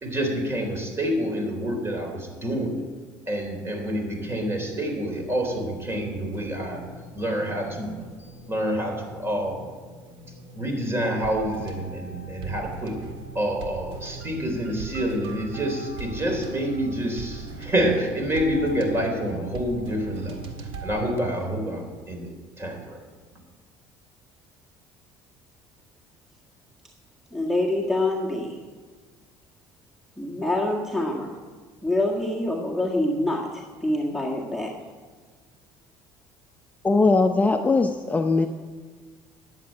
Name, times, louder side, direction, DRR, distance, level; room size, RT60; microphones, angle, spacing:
voice 1, 0.0-2.8 3.3-6.8 7.1-7.9 8.5-9.6 10.5-13.0 13.3-20.4 20.8-23.0, equal, 25° right, 3 dB, 3.5 m, -27 dB
sound 1, 3.9-21.0, right 3 dB, 65° right, 1.8 m, -40 dB
voice 2, 27.3-28.6 30.2-31.4 31.8-34.7, left 1 dB, 5° right, -1 dB, 1.7 m, -26 dB
voice 3, 36.8-38.5, left 3 dB, 15° left, 5 dB, 0.7 m, -20 dB
11.0 x 7.4 x 8.7 m, 1.4 s
supercardioid pair, 85°, 10 cm